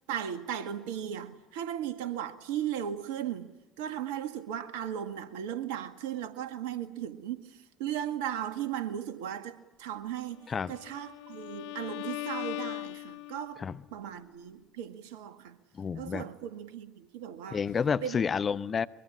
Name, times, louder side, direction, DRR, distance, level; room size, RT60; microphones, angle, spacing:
voice 1, 0.1-3.5 3.8-15.6 16.0-17.6 18.0-18.2, right 10 dB, 65° right, 1.9 m, -36 dB
Bowed string instrument, 10.6-13.7, left 18 dB, 60° left, 0.8 m, -39 dB
voice 2, 15.7-16.3 17.5-18.9, left 6 dB, 30° left, 0.9 m, -30 dB
24.0 x 23.0 x 8.6 m
figure-of-eight pair, 65°, 0 cm